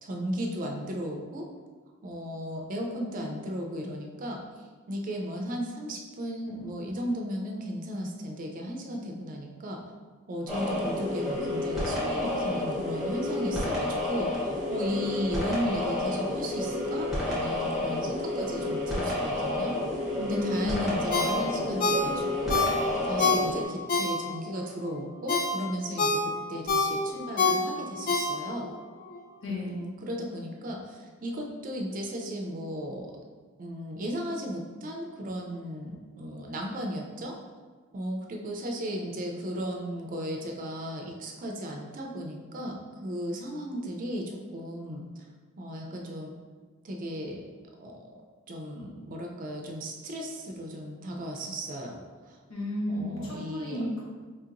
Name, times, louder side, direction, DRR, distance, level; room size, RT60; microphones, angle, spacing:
voice 1, 0.0-1.5 2.0-4.4 4.9-9.8 10.3-19.7 20.2-28.7 29.5-33.1 33.6-37.3 37.9-45.0 45.6-46.3 46.8-47.4 47.8-48.0 48.5-52.4 52.9-53.8, equal, 40° right, 1 dB, 0.4 m, -35 dB
sound 1, 10.5-23.6, left 2 dB, ahead, 0.9 m, -30 dB
voice 2, 20.3-21.0 29.4-29.8 52.5-54.0, left 1 dB, 65° left, -4 dB, 1.0 m, -33 dB
Ringtone, 21.1-24.6 25.0-28.7 29.1-29.2, left 3 dB, 40° left, 0.4 m, -27 dB
4.2 x 2.8 x 2.5 m, 1.4 s
head